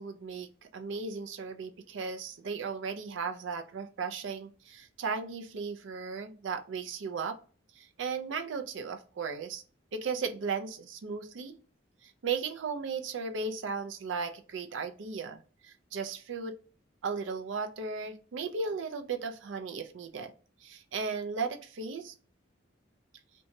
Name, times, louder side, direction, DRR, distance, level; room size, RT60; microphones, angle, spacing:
voice 1, 0.0-7.4 7.8-9.6 9.9-11.6 12.0-16.6 17.0-20.3 20.6-22.1, right 5 dB, 80° right, 7 dB, 0.4 m, -36 dB
2.6 x 2.2 x 2.8 m, 0.38 s
head